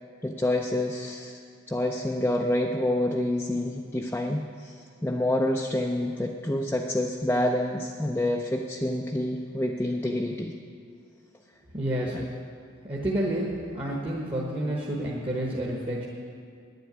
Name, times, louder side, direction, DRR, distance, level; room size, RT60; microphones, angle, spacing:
voice 1, 0.2-1.4 1.7-10.5 12.1-12.2, left 1 dB, 10° left, 1 dB, 0.4 m, -27 dB
voice 2, 11.7-12.1 12.9-13.5 13.7-16.0, right 1 dB, 25° right, -4 dB, 1.2 m, -29 dB
9.7 x 7.9 x 9.5 m, 2.3 s
head